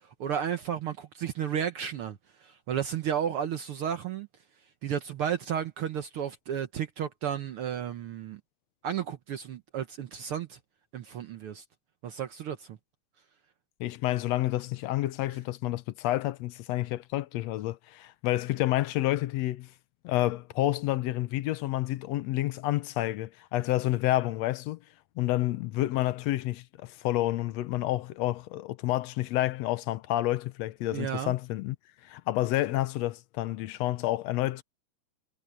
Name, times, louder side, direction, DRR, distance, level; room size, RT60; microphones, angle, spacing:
voice 1, 0.2-4.3 4.8-8.4 8.8-10.6 10.9-11.6 12.0-12.8 30.9-31.3, right 9 dB, 65° right, 1.5 m, -33 dB
voice 2, 13.8-19.7 20.0-24.8 25.2-31.8 32.0-34.6, left 15 dB, 75° left, 1.8 m, -29 dB
omnidirectional pair, 3.3 m